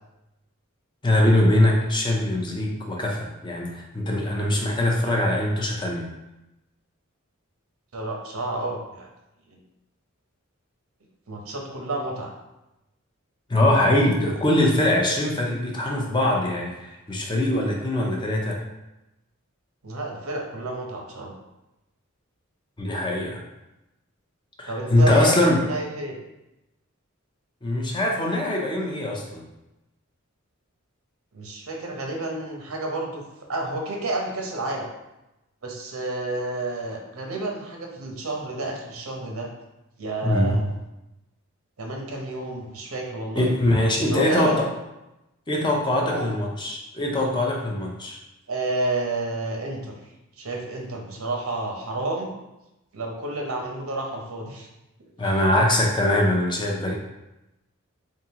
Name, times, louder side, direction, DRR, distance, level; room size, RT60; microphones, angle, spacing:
voice 1, 1.0-6.1 13.5-18.6 22.8-23.4 24.6-25.6 27.6-29.4 40.2-40.6 43.3-44.7 45.5-48.2 55.2-57.0, left 1 dB, 20° left, -1 dB, 0.5 m, -22 dB
voice 2, 7.9-9.1 9.5-9.6 11.3-12.3 19.8-21.3 24.7-26.2 31.3-33.2 33.5-34.9 35.6-39.5 40.0-40.7 41.8-43.5 44.0-44.6 46.1-46.3 48.5-49.9 50.4-52.4 52.9-54.7 55.0-55.1, right 2 dB, 75° right, 1 dB, 0.8 m, -30 dB
3.7 x 3.6 x 2.8 m, 0.95 s
head